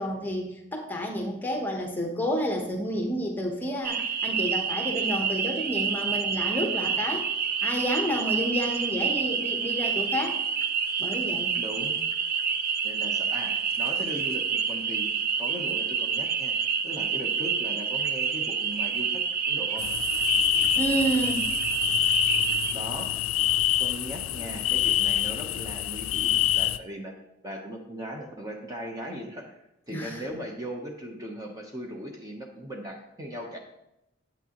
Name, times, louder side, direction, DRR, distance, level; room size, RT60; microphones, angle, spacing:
voice 1, 0.0-7.3 7.6-10.4 11.0-11.6 20.7-21.5 29.9-30.2, equal, 10° left, 1 dB, 0.9 m, -30 dB
sound 1, 3.8-22.7, right 6 dB, 50° right, 0.5 m, -28 dB
voice 2, 11.6-12.0 12.8-15.1 15.4-16.6 16.8-19.9 22.7-23.1 23.8-27.1 27.4-29.6 29.9-33.6, equal, 20° right, 0 dB, 0.9 m, -38 dB
sound 2, 19.8-26.8, left 14 dB, 90° left, 0.3 m, -26 dB
8.9 x 8.1 x 2.9 m, 0.86 s
head